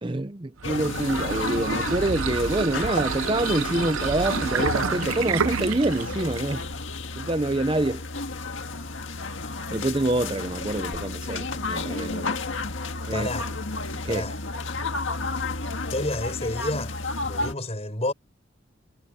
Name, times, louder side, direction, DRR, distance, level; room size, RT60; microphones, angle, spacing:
voice 1, 0.0-6.7 7.2-8.0 9.7-12.4 13.1-13.3 14.0-14.2, right 2 dB, 25° right, 0.6 m, -26 dB
sound 1, 0.6-17.5, left 3 dB, 70° left, 1.8 m, -32 dB
sound 2, 0.6-6.6, right 6 dB, 85° right, 0.7 m, -29 dB
voice 2, 13.1-13.5 14.1-14.4 15.9-17.0 17.2-18.1, left 1 dB, 30° left, 5.9 m, -30 dB
head